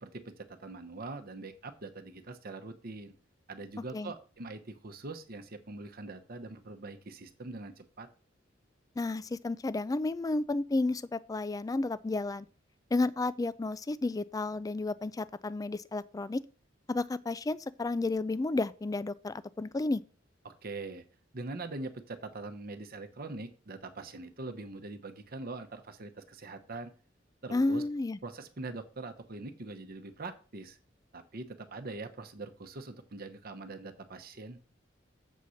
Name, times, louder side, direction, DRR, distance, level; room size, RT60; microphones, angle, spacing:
voice 1, 0.0-3.1 3.5-8.1 20.4-21.0 21.3-26.9 27.4-27.8 28.2-30.8 31.1-34.6, right 3 dB, 50° right, 0.9 m, -43 dB
voice 2, 9.0-12.5 12.9-16.4 16.9-20.0 27.5-28.2, left 2 dB, 20° left, 0.3 m, -32 dB
7.4 x 4.2 x 6.4 m
head